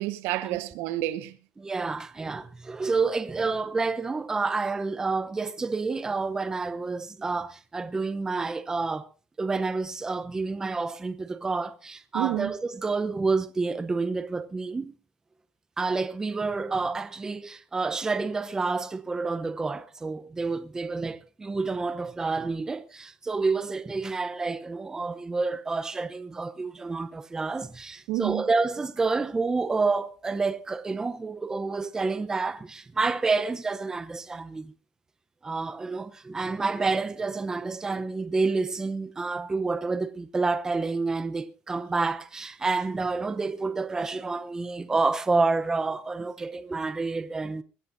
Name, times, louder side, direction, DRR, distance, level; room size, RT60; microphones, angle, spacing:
voice 1, 0.0-1.4 12.1-12.5 28.1-28.4, right 16 dB, 80° right, 1.2 m, -29 dB
voice 2, 1.6-9.1 9.4-15.0 15.8-34.7 35.4-47.6, right 3 dB, 15° right, 0.7 m, -29 dB
23.0 x 14.0 x 2.6 m
cardioid pair, 145°, 4 cm